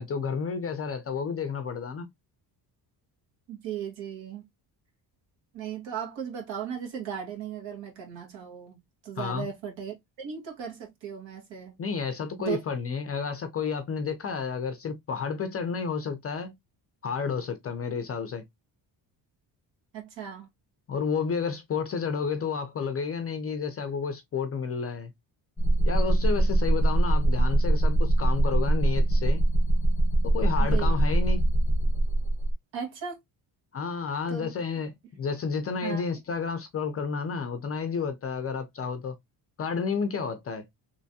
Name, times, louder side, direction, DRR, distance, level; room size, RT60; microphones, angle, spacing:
voice 1, 0.0-2.1 9.2-9.5 11.8-16.5 17.0-18.4 20.9-25.1 25.8-29.4 30.2-31.4 33.7-34.9 35.2-39.2 39.6-40.6, left 5 dB, 35° left, 0.4 m, -31 dB
voice 2, 3.5-4.4 5.5-11.8 12.4-12.6 19.9-20.5 30.6-31.0 32.7-33.2 34.3-34.5 35.8-36.0, right 8 dB, 75° right, 1.7 m, -36 dB
sound 1, 25.6-32.5, right 1 dB, 5° right, 0.8 m, -23 dB
3.3 x 3.1 x 2.7 m
cardioid pair, 180°, 45 cm